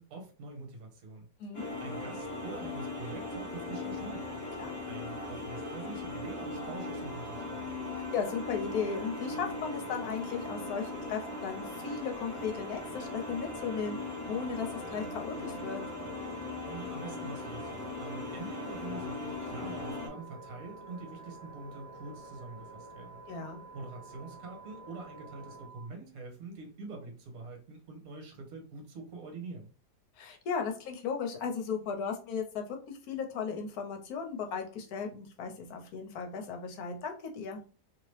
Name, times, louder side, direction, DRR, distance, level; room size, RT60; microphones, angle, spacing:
voice 1, 0.0-1.3 1.6-4.3 4.9-7.7 16.6-23.2 23.7-29.7, right 3 dB, 60° right, 1 dB, 1.3 m, -45 dB
sound 1, 1.5-20.1, left 2 dB, 20° left, 0.5 m, -39 dB
sound 2, 7.0-25.9, right 6 dB, 15° right, 1.1 m, -52 dB
voice 2, 8.1-15.8 23.3-23.6 30.2-32.6 33.1-37.6, left 6 dB, 70° left, 4 dB, 1.1 m, -36 dB
sound 3, 11.5-25.7, equal, 45° left, 0.9 m, -53 dB
2.9 x 2.8 x 3.1 m, 0.38 s
omnidirectional pair, 1.8 m